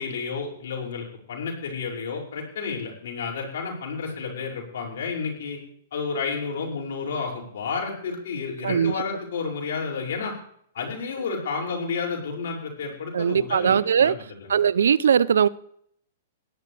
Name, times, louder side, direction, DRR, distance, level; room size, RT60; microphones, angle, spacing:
voice 1, 0.0-5.6 5.9-10.3 10.7-14.2, left 5 dB, 70° left, -1 dB, 6.1 m, -31 dB
voice 2, 8.6-8.9 13.1-14.1 14.5-15.5, right 7 dB, 80° right, 20 dB, 0.5 m, -20 dB
18.0 x 12.0 x 3.4 m, 0.64 s
hypercardioid pair, 120°, 0 cm